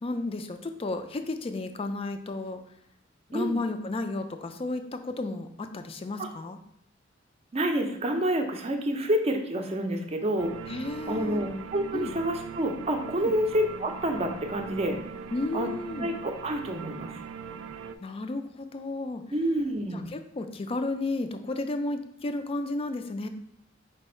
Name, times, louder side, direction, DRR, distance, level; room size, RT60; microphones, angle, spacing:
voice 1, 0.0-2.6 3.3-6.6 10.7-11.4 11.9-12.1 13.2-13.3 15.3-16.1 18.0-19.2 19.9-23.3, left 2 dB, 30° left, 8 dB, 0.4 m, -33 dB
voice 2, 7.5-10.7 11.1-15.0 15.5-15.7 16.0-17.2 19.3-20.1, right 1 dB, 35° right, 3 dB, 0.5 m, -28 dB
sound 1, 10.4-18.0, right 6 dB, 90° right, 0.3 m, -41 dB
4.6 x 2.5 x 4.2 m, 0.72 s
head